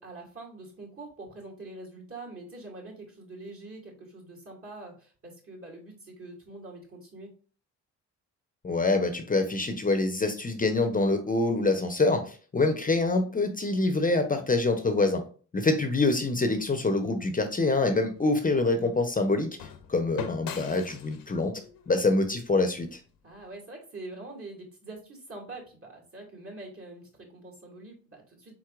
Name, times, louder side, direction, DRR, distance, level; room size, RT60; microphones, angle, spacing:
voice 1, 0.0-7.3 23.2-28.5, right 2 dB, 40° right, -1 dB, 2.3 m, -44 dB
voice 2, 8.6-15.2 15.5-19.5 19.9-21.6 21.9-23.0, left 2 dB, 25° left, 6 dB, 0.8 m, -25 dB
sound 1, 17.5-23.5, left 7 dB, 70° left, 0.8 m, -43 dB
4.5 x 4.1 x 2.5 m, 0.40 s
supercardioid pair, 55°, 35 cm